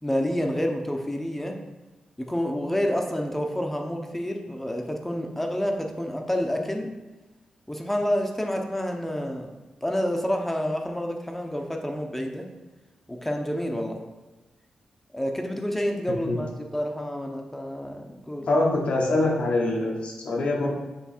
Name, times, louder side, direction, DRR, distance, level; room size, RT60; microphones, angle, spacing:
voice 1, 0.0-1.6 2.2-6.9 7.7-9.5 9.8-12.5 13.1-14.0 15.1-18.5, equal, 10° left, 3 dB, 0.9 m, -28 dB
voice 2, 18.5-20.7, left 2 dB, 70° left, -1 dB, 1.4 m, -24 dB
7.1 x 3.1 x 4.4 m, 1.1 s
cardioid pair, 70°, 2 cm